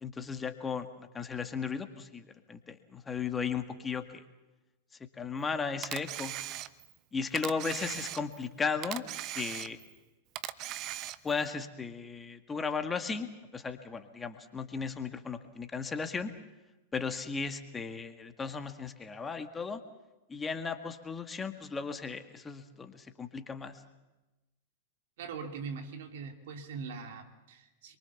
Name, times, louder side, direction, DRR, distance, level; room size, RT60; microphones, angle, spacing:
voice 1, 0.0-4.2 5.2-6.3 7.1-9.0 9.3-9.8 11.2-16.3 16.9-19.8 20.3-23.8, left 5 dB, 15° left, 8 dB, 1.9 m, -36 dB
Camera, 5.8-7.0 7.4-8.5 8.8-10.0 10.4-11.4, right 14 dB, 40° right, 1.0 m, -39 dB
voice 2, 25.2-28.0, right 5 dB, 65° right, 5 dB, 2.9 m, -42 dB
26.5 x 23.5 x 7.2 m, 1.1 s
hypercardioid pair, 100°, 0 cm